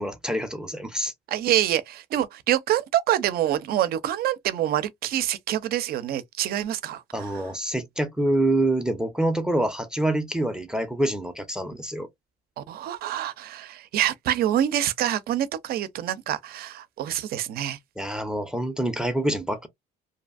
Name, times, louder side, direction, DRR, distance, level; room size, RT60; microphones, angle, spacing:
voice 1, 0.0-1.1 7.1-12.1 18.0-19.7, right 1 dB, 5° right, 0.5 m, -26 dB
voice 2, 1.3-7.4 12.6-17.8, right 12 dB, 65° right, 0.5 m, -26 dB
2.7 x 2.5 x 2.4 m
cardioid pair, 110°, 17 cm